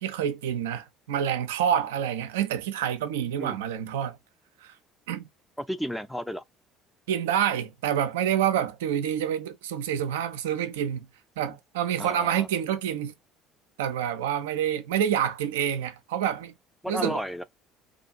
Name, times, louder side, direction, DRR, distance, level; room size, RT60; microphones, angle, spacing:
voice 1, 0.0-4.2 4.6-4.7 5.1-5.2 7.1-11.1 11.4-13.1 13.8-16.5 16.9-17.2, right 9 dB, 75° right, 0.3 m, -27 dB
voice 2, 5.6-6.4 12.0-12.5 16.8-17.4, equal, 5° left, 0.4 m, -32 dB
2.5 x 2.3 x 2.6 m
figure-of-eight pair, 60°, 0 cm